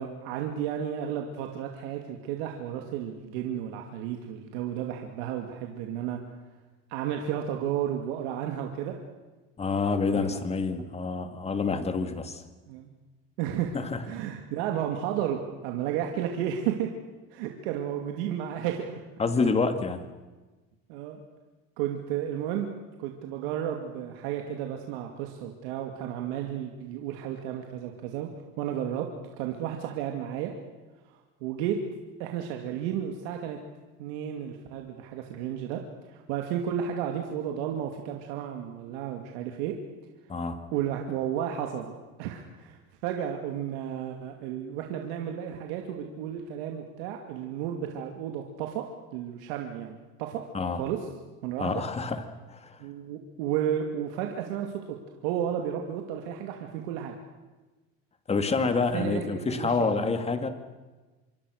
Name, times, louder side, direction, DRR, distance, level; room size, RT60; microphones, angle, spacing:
voice 1, 0.0-6.2 6.9-9.0 10.1-10.4 10.7-10.8 12.7-12.9 13.4-13.8 14.0-16.9 17.3-19.0 20.9-21.2 21.8-22.7 23.0-28.3 28.6-29.1 29.4-30.5 31.1-31.8 32.2-33.6 34.0-35.8 36.1-39.8 40.7-48.9 49.1-50.4 50.7-51.0 51.4-51.7 52.8-55.0 55.2-57.2 58.6-60.1, right 10 dB, 90° right, 3 dB, 2.5 m, -33 dB
voice 2, 9.6-12.4 13.7-14.0 19.2-20.0 40.3-40.6 50.5-50.8 51.6-52.2 52.5-52.8 58.3-60.5, left 4 dB, 20° left, 8 dB, 2.2 m, -27 dB
26.5 x 23.5 x 6.5 m, 1.2 s
cardioid pair, 130°, 30 cm